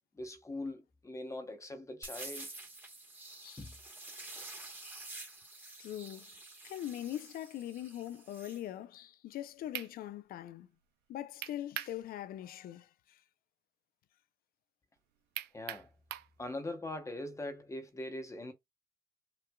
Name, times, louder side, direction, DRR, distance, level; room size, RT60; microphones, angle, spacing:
voice 1, 0.1-2.5 3.6-3.7 15.5-15.9 16.4-18.5, left 1 dB, 15° left, 0.8 m, -41 dB
sound 1, 2.0-8.6, right 2 dB, 10° right, 1.1 m, -48 dB
voice 2, 5.8-6.4 6.6-10.7 11.1-13.2, left 12 dB, 60° left, 0.5 m, -42 dB
sound 2, 9.3-9.4 9.7-9.9 11.4-12.0 12.4-12.5 15.3-16.3, right 14 dB, 80° right, 0.5 m, -40 dB
5.9 x 2.4 x 2.2 m
cardioid pair, 110°, 17 cm